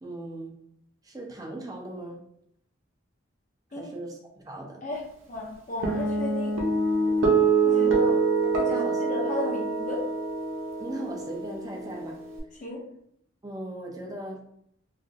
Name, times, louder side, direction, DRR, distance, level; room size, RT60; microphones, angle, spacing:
voice 1, 0.0-0.6 1.0-2.2 3.7-4.8 7.7-8.2 8.7-9.0 9.4-9.5 10.8-12.2 13.4-14.4, right 1 dB, 20° right, 0 dB, 0.4 m, -38 dB
voice 2, 5.3-6.6 7.6-7.9 8.5-10.1 12.6-12.8, left 2 dB, 35° left, -2 dB, 0.6 m, -34 dB
Guitar, 5.8-12.4, right 4 dB, 80° right, 0.6 m, -25 dB
2.9 x 2.4 x 2.5 m, 0.72 s
head